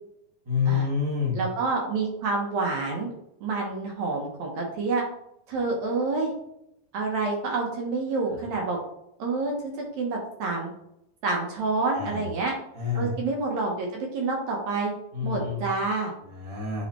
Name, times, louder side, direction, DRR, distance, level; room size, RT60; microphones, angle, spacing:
voice 1, 0.4-1.4 11.9-12.3 12.7-13.1 15.1-15.6 16.3-16.8, left 6 dB, 50° right, -5 dB, 0.3 m, -28 dB
voice 2, 1.3-3.1 3.4-5.0 5.5-6.3 6.9-8.8 9.2-10.7 11.2-12.6 13.0-14.9 15.2-16.1, right 3 dB, 70° right, 0 dB, 1.9 m, -28 dB
8.5 x 4.1 x 3.0 m, 0.79 s
omnidirectional pair, 4.1 m